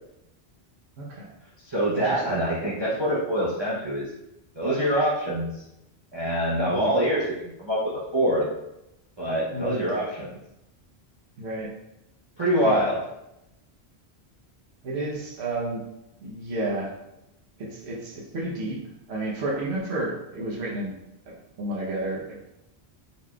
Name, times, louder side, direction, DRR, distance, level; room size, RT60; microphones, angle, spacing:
voice 1, 1.0-1.3 1.9-2.4 6.7-6.9 9.5-9.9 11.4-11.7 12.6-12.9 14.8-15.8 16.2-17.0 17.6-18.8 19.1-21.0 21.3-22.5, right 2 dB, 85° right, -3 dB, 1.1 m, -31 dB
voice 2, 1.6-4.1 4.6-5.6 6.1-7.8 8.1-8.4 9.2-10.3 12.4-13.0, equal, 30° right, -8 dB, 0.6 m, -25 dB
4.1 x 3.0 x 2.2 m, 0.88 s
omnidirectional pair, 1.1 m